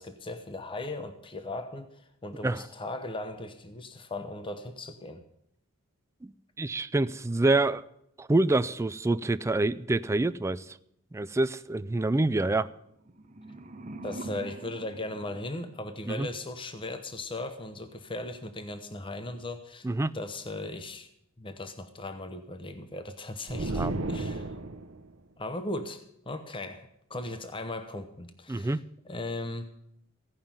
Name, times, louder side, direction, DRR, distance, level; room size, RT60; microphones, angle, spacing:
voice 1, 0.0-5.2 14.0-19.9 20.1-21.1 21.4-24.6 25.4-26.0 26.3-28.8 29.0-29.7, left 2 dB, 25° left, 8 dB, 0.8 m, -38 dB
voice 2, 6.6-7.8 8.2-10.6 11.1-12.7 16.1-16.3 19.8-20.1 23.6-23.9 28.5-28.8, right 2 dB, 15° right, 14 dB, 0.4 m, -26 dB
sound 1, 12.9-16.0, right 2 dB, 35° right, 0.9 m, -44 dB
sound 2, 23.5-25.0, right 2 dB, 80° right, 0.9 m, -33 dB
16.0 x 5.6 x 8.8 m, 0.77 s
head